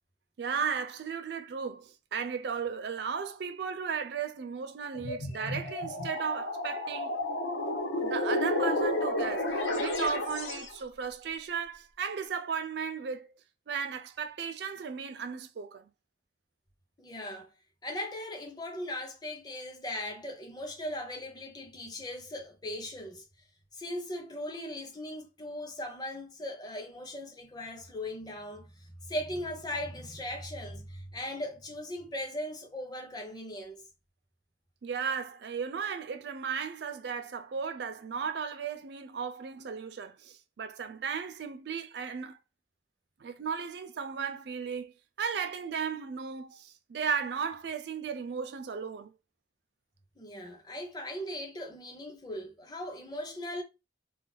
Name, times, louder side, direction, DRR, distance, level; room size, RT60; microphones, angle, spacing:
voice 1, 0.4-7.2 8.0-13.3 13.7-15.9 34.8-42.4 43.2-44.9 45.2-49.1, right 6 dB, 65° right, 0.4 m, -35 dB
sound 1, 4.9-10.7, left 1 dB, 85° left, 0.8 m, -31 dB
voice 2, 17.0-17.5 17.8-23.2 23.7-33.9 50.2-53.6, left 1 dB, 20° left, 0.6 m, -39 dB
2.4 x 2.1 x 3.8 m
head